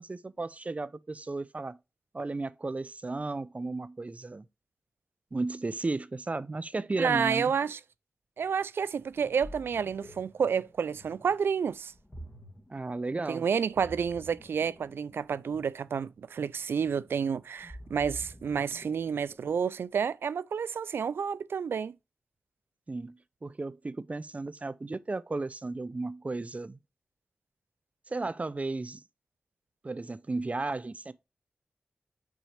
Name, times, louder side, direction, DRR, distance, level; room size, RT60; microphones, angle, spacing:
voice 1, 0.0-1.8 2.1-4.4 5.3-7.5 12.7-13.4 22.9-23.2 23.4-26.8 28.1-29.0 29.8-31.1, right 3 dB, 35° right, 0.6 m, -34 dB
voice 2, 7.0-7.8 8.4-11.9 13.3-21.9, right 6 dB, 80° right, 0.3 m, -30 dB
Ocean, 9.0-19.8, equal, 20° left, 2.4 m, -49 dB
6.2 x 4.2 x 4.8 m
cardioid pair, 50°, 4 cm